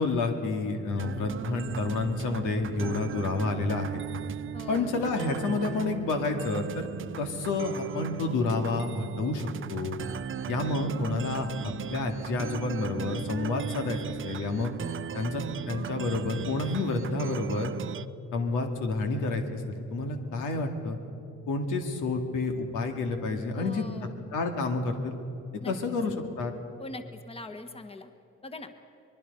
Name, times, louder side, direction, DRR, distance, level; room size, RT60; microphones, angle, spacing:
voice 1, 0.0-4.0 4.7-6.9 7.2-10.0 10.5-14.7 15.1-17.7 18.3-21.0 21.5-23.8 24.3-25.1 25.7-26.5, left 3 dB, 90° left, 4 dB, 2.3 m, -29 dB
sound 1, 1.0-18.1, right 9 dB, 45° right, 0.6 m, -37 dB
voice 2, 4.5-5.0 23.5-24.2 25.6-25.7 26.8-28.1 28.4-28.7, left 2 dB, 20° left, 8 dB, 1.4 m, -42 dB
24.5 x 21.5 x 5.5 m, 2.7 s
cardioid pair, 90°, 30 cm